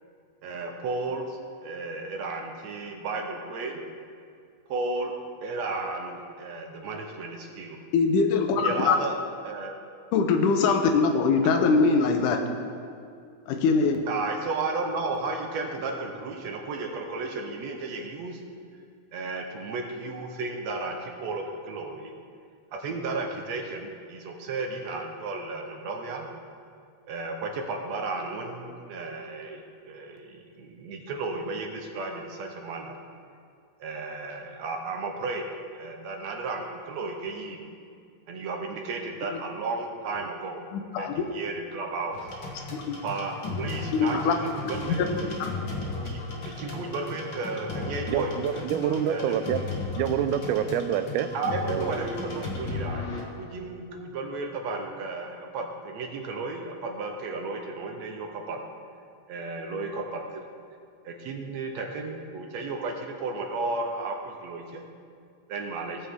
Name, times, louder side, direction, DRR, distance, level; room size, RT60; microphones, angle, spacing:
voice 1, 0.4-3.8 4.7-5.1 5.4-7.8 8.6-9.2 9.4-9.7 14.1-18.4 19.1-22.1 22.7-26.3 27.1-33.0 33.8-35.4 35.8-37.7 38.3-40.6 41.0-42.2 43.0-45.1 46.0-49.3 51.3-53.1 53.4-58.6 59.3-60.4 61.0-64.9 65.5-66.0, right 3 dB, 70° right, 2 dB, 2.0 m, -33 dB
voice 2, 7.9-9.0 10.1-12.4 13.5-14.0 39.3-39.4 40.7-41.3 42.7-43.0 43.9-44.3, left 4 dB, 90° left, 5 dB, 2.4 m, -22 dB
sound 1, 42.1-53.2, left 3 dB, 50° left, 1.6 m, -35 dB
voice 3, 48.1-49.6 50.0-51.3 51.7-52.0, right 9 dB, 90° right, 11 dB, 2.1 m, -27 dB
18.0 x 7.2 x 3.7 m, 2.3 s
omnidirectional pair, 3.5 m